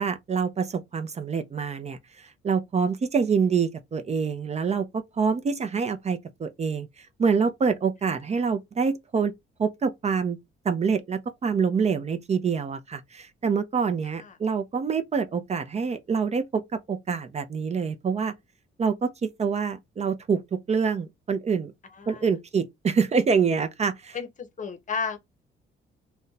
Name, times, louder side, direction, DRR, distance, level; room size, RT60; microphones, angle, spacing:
voice 1, 0.0-9.3 9.6-10.4 10.6-18.3 18.8-21.7 22.1-24.2, right 5 dB, 35° right, 0.5 m, -26 dB
voice 2, 24.1-25.2, left 6 dB, 40° left, 0.7 m, -33 dB
2.5 x 2.2 x 3.9 m
cardioid pair, 90°, 20 cm